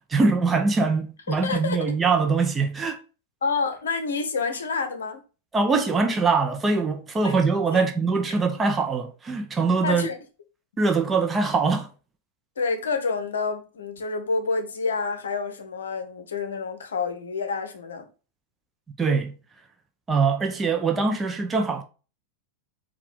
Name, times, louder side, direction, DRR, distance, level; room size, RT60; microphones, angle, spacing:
voice 1, 0.1-3.0 5.5-10.1 10.8-11.9 19.0-19.3 20.1-21.8, right 4 dB, 15° right, 0.6 m, -23 dB
voice 2, 1.3-1.8 3.4-5.2 7.2-7.4 7.7-7.8 9.8-10.2 12.6-18.1, left 4 dB, 65° left, 0.7 m, -28 dB
4.5 x 2.3 x 3.6 m
figure-of-eight pair, 90°, 0 cm